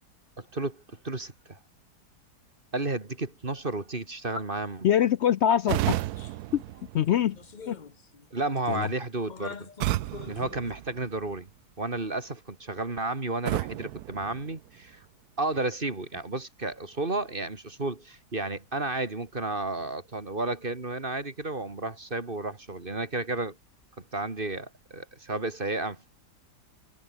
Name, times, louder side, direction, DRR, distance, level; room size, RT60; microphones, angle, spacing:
voice 1, 0.4-1.6 2.7-4.9 8.3-9.7 10.3-11.5 11.8-15.0 15.4-23.6 24.1-26.1, right 2 dB, 30° right, 2.5 m, -32 dB
voice 2, 4.8-6.0 6.5-7.4 7.7-7.8 8.7-8.9, left 10 dB, 80° left, 0.6 m, -24 dB
sound 1, 5.7-7.6 9.8-11.5 13.4-15.1, right 15 dB, 75° right, 1.0 m, -33 dB
sound 2, 6.2-6.4 6.7-6.8 7.3-8.3 8.6-8.9 9.2-10.7, left 5 dB, 35° left, 0.9 m, -44 dB
omnidirectional pair, 1.8 m